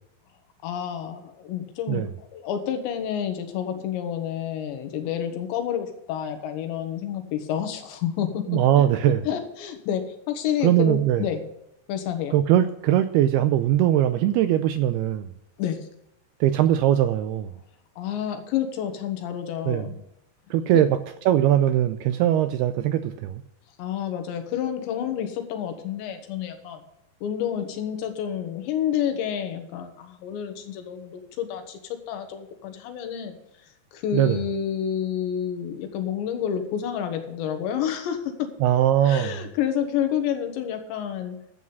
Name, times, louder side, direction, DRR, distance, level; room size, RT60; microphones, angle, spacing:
voice 1, 0.6-8.5 8.8-8.9 9.3-11.4 11.9-12.4 15.6-15.8 18.0-20.0 20.7-20.8 23.8-26.8 27.2-33.4 33.9-38.5 39.0-41.4, left 9 dB, 80° left, 6 dB, 3.6 m, -29 dB
voice 2, 8.5-9.2 10.6-11.2 12.3-15.3 16.4-17.5 19.7-19.9 20.5-20.9 21.3-23.4 34.1-34.4 38.6-39.4, right 11 dB, 85° right, 10 dB, 2.3 m, -20 dB
12.5 x 8.5 x 5.5 m, 0.82 s
omnidirectional pair, 5.2 m